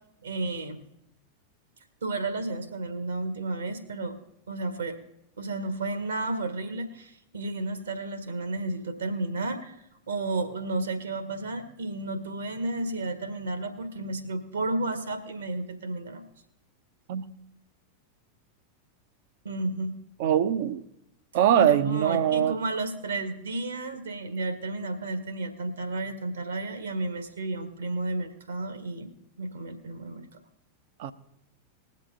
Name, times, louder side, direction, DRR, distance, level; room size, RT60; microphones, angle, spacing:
voice 1, 0.2-0.8 2.0-4.2 4.5-5.0 5.4-9.8 10.1-16.3 19.4-19.9 21.5-29.1 29.4-30.2, right 2 dB, 70° right, 8 dB, 1.6 m, -32 dB
voice 2, 20.2-20.8 21.3-22.6 31.0-31.1, right 10 dB, 50° right, 12 dB, 0.8 m, -23 dB
20.5 x 7.6 x 3.8 m, 0.80 s
figure-of-eight pair, 90°, 0 cm